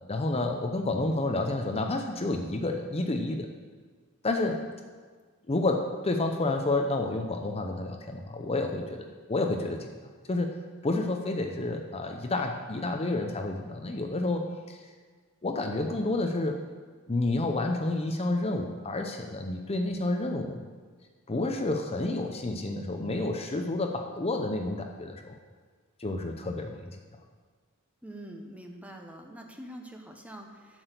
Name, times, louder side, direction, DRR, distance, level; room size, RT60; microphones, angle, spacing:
voice 1, 0.1-3.5 4.2-4.6 5.5-9.9 10.3-10.6 10.8-14.8 15.4-16.6 17.1-20.6 21.3-25.4 26.0-26.9, left 2 dB, 30° left, 4 dB, 0.6 m, -30 dB
voice 2, 28.0-30.8, right 1 dB, 5° right, 3 dB, 0.9 m, -45 dB
7.8 x 6.3 x 8.0 m, 1.5 s
head